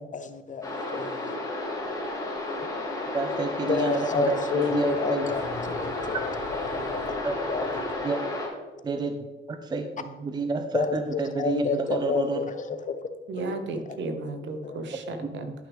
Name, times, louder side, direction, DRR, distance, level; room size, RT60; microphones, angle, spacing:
voice 1, 0.1-1.3 3.6-6.3 6.7-7.1 7.5-7.8 10.7-13.0 13.4-13.5 14.6-14.8, left 5 dB, 40° left, 10 dB, 0.6 m, -30 dB
sound 1, 0.6-8.5, left 2 dB, 15° left, 2.9 m, -32 dB
sound 2, 1.5-8.1, left 4 dB, 60° left, 0.9 m, -46 dB
voice 2, 3.1-5.3 6.1-6.2 7.2-7.4 8.0-8.2 8.8-9.2 9.5-12.4, right 3 dB, 20° right, 6 dB, 0.5 m, -29 dB
voice 3, 13.3-15.5, right 2 dB, 60° right, 7 dB, 1.1 m, -34 dB
11.5 x 6.0 x 3.6 m, 1.3 s
cardioid pair, 135°, 21 cm